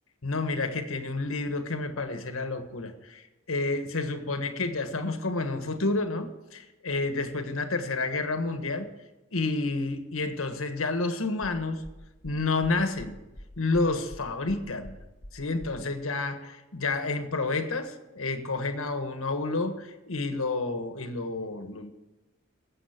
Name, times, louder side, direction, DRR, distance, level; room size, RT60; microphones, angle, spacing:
voice 1, 0.2-8.9 9.3-11.8 12.2-13.2 13.6-15.0 15.3-21.9, left 3 dB, 80° left, 7 dB, 1.5 m, -30 dB
sound 1, 11.4-15.8, left 1 dB, 30° left, 1.6 m, -45 dB
18.5 x 7.7 x 6.0 m, 1.1 s
head